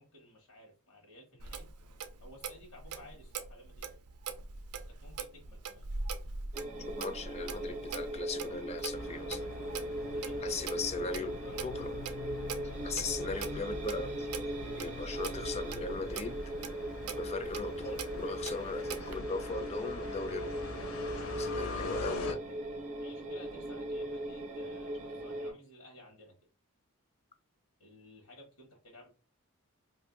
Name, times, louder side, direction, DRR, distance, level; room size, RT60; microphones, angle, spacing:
voice 1, 0.0-1.7 2.2-3.9 4.9-5.9 10.1-10.6 11.4-11.6 23.0-26.4 27.8-29.1, left 1 dB, 90° left, 1.2 m, -55 dB
Clock, 1.4-19.2, right 5 dB, 90° right, 0.5 m, -43 dB
sound 1, 6.5-25.5, right 1 dB, 35° right, 0.6 m, -39 dB
voice 2, 6.8-9.4 10.4-11.3 11.6-11.9 12.8-14.3 14.8-16.4 17.2-20.6 21.4-22.4, left 4 dB, 30° left, 0.4 m, -39 dB
sound 2, 8.9-22.3, left 3 dB, 65° left, 0.7 m, -43 dB
2.6 x 2.5 x 3.8 m
head